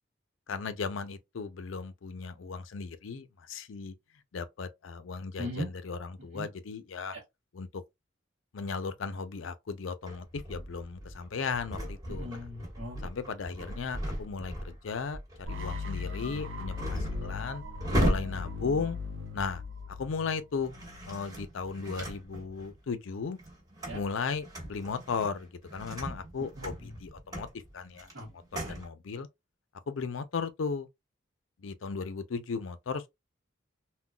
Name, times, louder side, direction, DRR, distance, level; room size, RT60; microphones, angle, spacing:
voice 1, 0.5-3.9 4.3-7.2 7.5-7.8 8.5-12.4 13.0-17.6 18.0-19.0 19.3-19.6 20.0-20.8 21.1-23.4 23.9-27.5 27.7-28.1 28.5-29.3 29.9-30.9 31.6-33.1, left 5 dB, 80° left, 0.5 m, -36 dB
voice 2, 5.4-5.7 6.3-6.5 12.2-13.1 23.9-24.0 26.6-26.7 28.1-28.8, equal, 60° right, 1.1 m, -39 dB
sound 1, 10.0-19.8 20.6-22.8 23.2-28.9, right 1 dB, 20° right, 1.2 m, -37 dB
sound 2, 15.5-21.4, left 4 dB, 80° right, 0.7 m, -39 dB
3.7 x 2.2 x 2.2 m
head